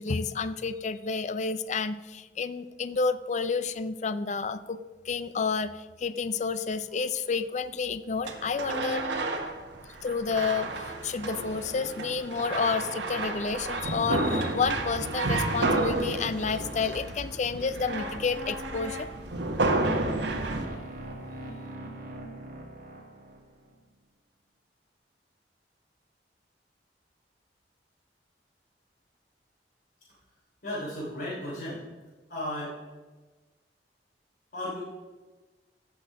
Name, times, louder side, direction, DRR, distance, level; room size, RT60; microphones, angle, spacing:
voice 1, 0.0-4.8 5.1-9.0 10.0-10.7 11.0-19.1, left 5 dB, 40° left, 14 dB, 0.5 m, -30 dB
sound 1, 8.3-20.7, right 2 dB, 85° right, 1.3 m, -31 dB
sound 2, 19.6-23.7, right 1 dB, 55° right, 2.1 m, -42 dB
voice 2, 30.6-31.9 32.3-32.8 34.5-34.8, left 1 dB, 60° left, -8 dB, 3.5 m, -34 dB
15.5 x 6.0 x 5.0 m, 1.3 s
head